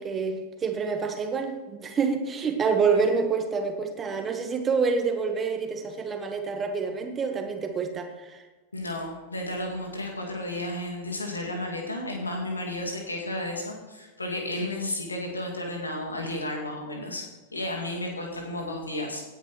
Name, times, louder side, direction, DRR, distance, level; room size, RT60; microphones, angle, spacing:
voice 1, 0.0-8.4, right 5 dB, 20° right, 5 dB, 1.3 m, -27 dB
voice 2, 8.7-19.2, left 1 dB, 80° left, 1 dB, 2.1 m, -33 dB
17.0 x 9.5 x 3.1 m, 1.2 s
figure-of-eight pair, 90°, 0 cm